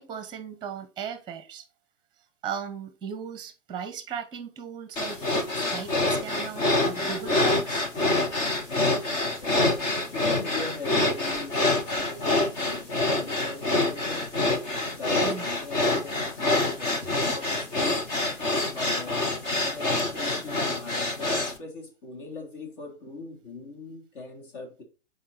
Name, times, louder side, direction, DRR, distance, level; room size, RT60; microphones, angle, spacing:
voice 1, 0.0-1.7 2.4-5.2 5.6-7.9 15.2-15.5, right 7 dB, 10° right, 1.1 m, -37 dB
sound 1, 5.0-21.6, left 2 dB, 10° left, 0.4 m, -26 dB
voice 2, 9.1-12.9 13.1-14.6 15.0-18.0 18.7-24.8, left 3 dB, 45° left, 3.4 m, -41 dB
7.3 x 4.9 x 4.1 m
hypercardioid pair, 135°, 38 cm